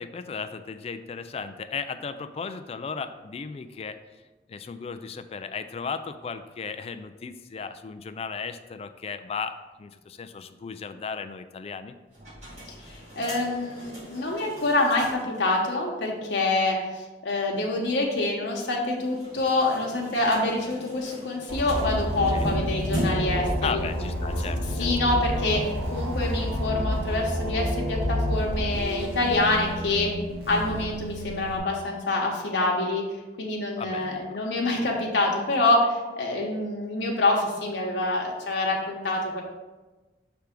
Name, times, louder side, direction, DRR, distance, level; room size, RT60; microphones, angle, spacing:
voice 1, 0.0-4.0 4.5-11.9 22.3-22.5 23.6-25.2 33.8-34.4, left 5 dB, 35° left, 10 dB, 0.3 m, -35 dB
sound 1, 12.1-15.4 15.7-15.8 16.0-16.1 18.9-23.5, right 1 dB, 40° right, 2.0 m, -37 dB
voice 2, 12.7-16.8 17.2-23.8 24.8-30.1 30.5-33.0 33.4-39.4, left 2 dB, 85° left, -1 dB, 1.0 m, -26 dB
sound 2, 21.5-31.6, equal, 90° right, 1.4 m, -29 dB
5.9 x 3.4 x 5.1 m, 1.2 s
head